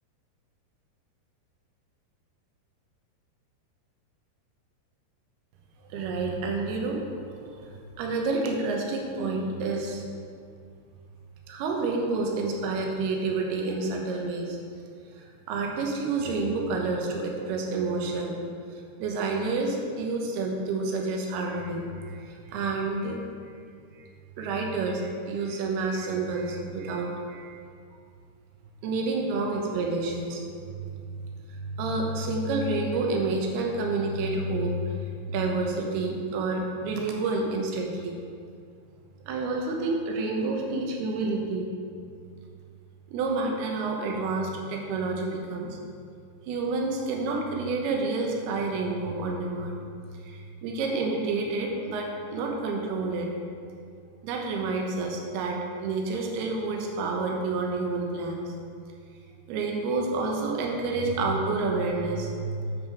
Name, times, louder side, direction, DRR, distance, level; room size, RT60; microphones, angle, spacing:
voice 1, 5.9-10.0 11.5-14.6 15.2-18.4 19.0-23.2 24.4-27.6 28.8-30.4 30.8-30.9 31.4-38.2 39.3-41.7 43.1-45.8 46.5-49.8 50.2-53.3 54.2-58.5 59.5-62.9, right 3 dB, 80° right, 1 dB, 3.0 m, -29 dB
9.3 x 7.4 x 4.6 m, 2.3 s
omnidirectional pair, 4.6 m